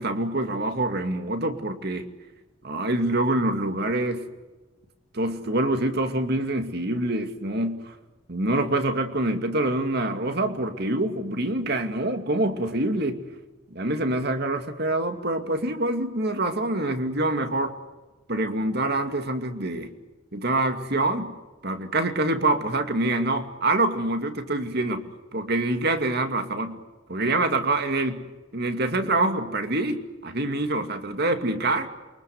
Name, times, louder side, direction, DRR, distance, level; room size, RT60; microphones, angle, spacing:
voice 1, 0.0-2.1 2.6-4.3 5.1-8.0 8.3-13.2 13.7-17.8 18.3-19.9 20.3-21.3 21.6-25.0 25.3-26.8 27.1-28.2 28.5-31.9, right 2 dB, 50° right, 7 dB, 2.4 m, -25 dB
28.0 x 24.0 x 8.0 m, 1.2 s
head